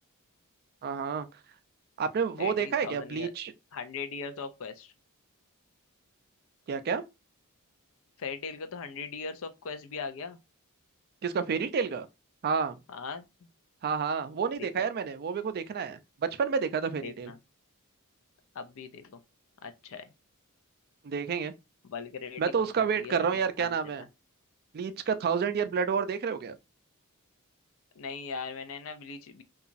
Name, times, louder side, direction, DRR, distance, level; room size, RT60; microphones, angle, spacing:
voice 1, 0.8-1.3 2.0-3.5 6.7-7.0 11.2-12.1 12.4-12.8 13.8-17.3 21.0-21.5 22.4-24.1 24.7-26.5, right 6 dB, 45° right, 0.3 m, -29 dB
voice 2, 2.4-3.3 3.7-4.9 8.2-10.4 12.9-13.5 14.6-14.9 17.0-17.4 18.5-19.2 19.6-20.1 21.8-24.1 28.0-29.4, left 5 dB, 65° left, 0.4 m, -40 dB
2.9 x 2.3 x 2.4 m
head